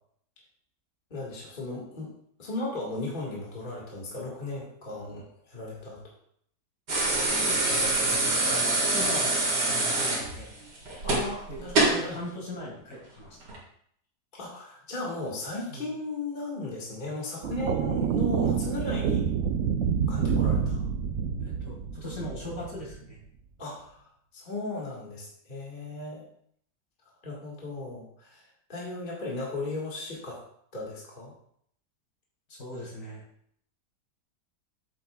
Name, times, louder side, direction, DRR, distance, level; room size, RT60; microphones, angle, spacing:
voice 1, 1.1-2.1 2.4-6.0 11.0-12.2 14.4-19.2 20.1-20.8 23.6-26.2 27.0-30.4 30.7-31.3, left 2 dB, 30° left, -4 dB, 1.8 m, -36 dB
sound 1, 6.9-12.1 13.4-13.6, right 2 dB, 85° right, 2.5 m, -25 dB
voice 2, 7.3-8.4 8.9-9.4 9.7-10.5 11.5-13.4 15.7-15.9 21.4-23.2 32.5-33.2, left 1 dB, 60° left, -3 dB, 2.5 m, -40 dB
sound 2, 17.4-23.1, right 7 dB, 70° right, 0.7 m, -28 dB
8.2 x 8.0 x 2.3 m, 0.66 s
omnidirectional pair, 1.8 m